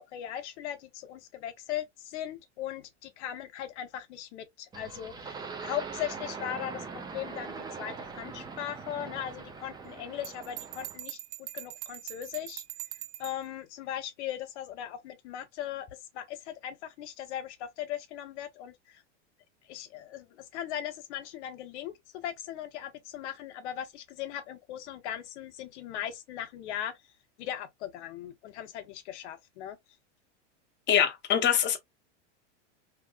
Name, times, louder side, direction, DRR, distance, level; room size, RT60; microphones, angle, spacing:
voice 1, 0.0-6.8 7.1-12.6 13.2-15.9 16.1-19.0 19.7-26.9 27.4-29.8, left 11 dB, 70° left, 0.9 m, -38 dB
sound 1, 4.7-11.0, right 5 dB, 10° right, 0.4 m, -41 dB
Bell, 10.2-13.4, right 15 dB, 70° right, 0.7 m, -42 dB
voice 2, 30.9-31.8, left 9 dB, 30° left, 0.8 m, -24 dB
3.0 x 2.9 x 2.3 m
supercardioid pair, 125°, 36 cm